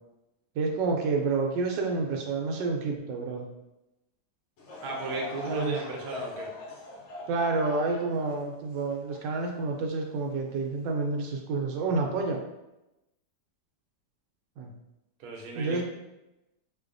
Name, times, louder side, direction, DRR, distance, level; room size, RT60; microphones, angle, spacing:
voice 1, 0.6-3.5 5.5-5.8 7.3-12.4 14.6-14.7 15.5-15.8, right 3 dB, 85° right, 1 dB, 1.3 m, -29 dB
Laughter / Crowd, 4.6-10.0 10.6-10.7 11.5-11.7, left 2 dB, 70° left, 0.6 m, -42 dB
voice 2, 4.8-6.5 15.2-15.8, right 2 dB, 65° right, 0 dB, 1.0 m, -35 dB
3.9 x 2.7 x 2.5 m, 0.95 s
omnidirectional pair, 2.0 m